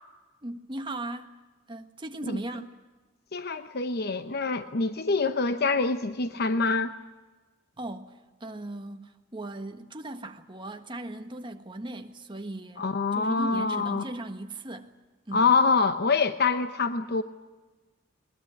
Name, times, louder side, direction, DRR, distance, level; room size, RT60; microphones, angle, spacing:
voice 1, 0.4-1.3 1.7-2.7 7.8-12.8 13.1-14.9 15.3-15.5, right 1 dB, 25° right, 1.5 m, -38 dB
voice 2, 3.3-6.9 12.8-14.0 15.3-17.2, left 4 dB, 55° left, 0.9 m, -25 dB
21.5 x 20.5 x 9.3 m
head